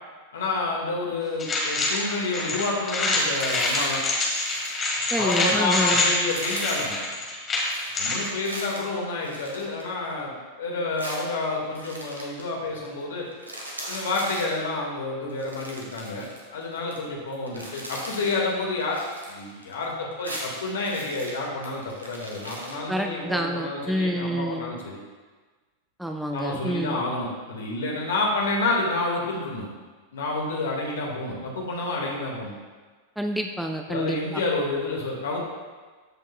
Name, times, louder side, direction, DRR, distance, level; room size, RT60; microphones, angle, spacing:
voice 1, 0.3-4.0 5.2-7.2 7.9-13.3 13.9-16.2 16.5-25.0 26.3-29.7 30.1-32.5 33.9-35.4, left 2 dB, 65° left, -2 dB, 1.8 m, -29 dB
sound 1, 1.4-8.3, left 2 dB, 25° left, 1.8 m, -26 dB
sound 2, 3.0-4.0 4.2-5.7 6.1-6.9 7.6-10.2 11.0-12.5 12.8-13.0 13.3-14.6 15.3-17.0 17.3-18.5 18.8-19.9 20.1-22.8, right 1 dB, 80° right, 1.3 m, -39 dB
voice 2, 5.1-6.0 22.9-24.7 26.0-27.0 33.2-34.4, equal, ahead, 3 dB, 0.4 m, -28 dB
14.0 x 5.3 x 2.3 m, 1.4 s
figure-of-eight pair, 90°, 0 cm